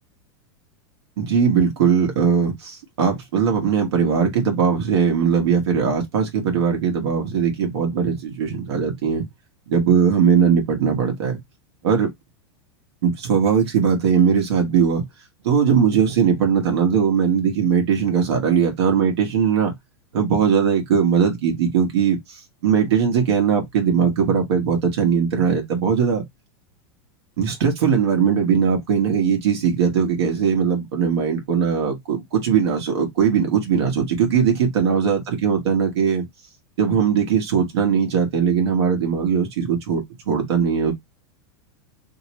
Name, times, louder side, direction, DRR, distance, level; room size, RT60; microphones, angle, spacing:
voice 1, 1.2-9.3 9.7-11.4 11.8-12.1 13.0-15.0 15.4-19.7 20.1-26.2 27.4-36.2 36.8-40.9, right 7 dB, 75° right, 1.3 m, -20 dB
3.0 x 2.9 x 3.0 m
supercardioid pair, 145°, 14 cm